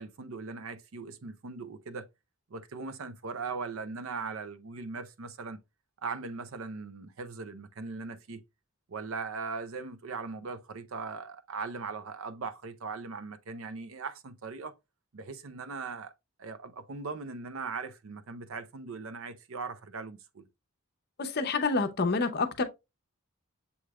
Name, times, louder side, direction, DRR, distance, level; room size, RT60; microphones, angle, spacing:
voice 1, 0.0-2.1 2.5-5.6 6.0-8.4 8.9-14.8 15.1-16.1 16.4-20.5, right 4 dB, 65° right, 0.5 m, -39 dB
voice 2, 21.2-22.6, left 3 dB, 45° left, 0.7 m, -28 dB
7.0 x 3.2 x 2.3 m
head